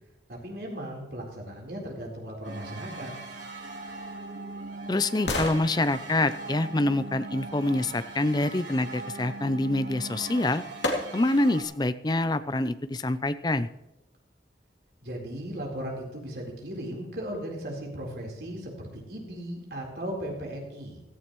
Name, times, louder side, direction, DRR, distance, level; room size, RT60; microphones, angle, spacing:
voice 1, 0.3-3.1 15.0-21.0, right 1 dB, 60° right, -1 dB, 4.0 m, -37 dB
sound 1, 2.4-11.6, right 2 dB, 80° right, 3.5 m, -40 dB
voice 2, 4.9-10.6 11.1-13.7, left 2 dB, 25° left, 13 dB, 0.5 m, -26 dB
sound 2, 10.8-11.5 12.0-12.1, left 2 dB, 85° left, 2.6 m, -36 dB
16.0 x 14.5 x 3.1 m, 0.98 s
head